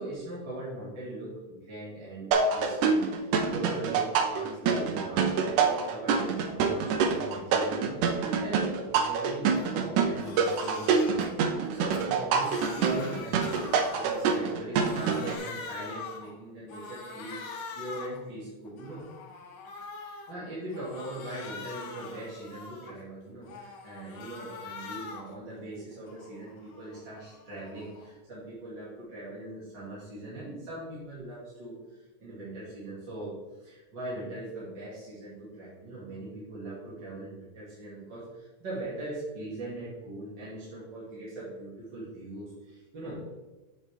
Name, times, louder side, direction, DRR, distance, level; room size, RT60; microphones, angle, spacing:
voice 1, 0.0-19.0 19.9-43.2, right 1 dB, 40° right, -9 dB, 2.5 m, -41 dB
sound 1, 2.3-15.4, right 5 dB, 80° right, 2.1 m, -26 dB
Crying sobbing, 9.6-9.8 10.1-11.3 11.7-14.5 14.8-16.3 16.7-18.2 18.6-20.3 20.7-23.0 23.4-25.4 25.7-28.1, left 4 dB, 80° left, 2.7 m, -44 dB
8.2 x 7.1 x 3.5 m, 1.1 s
omnidirectional pair, 3.7 m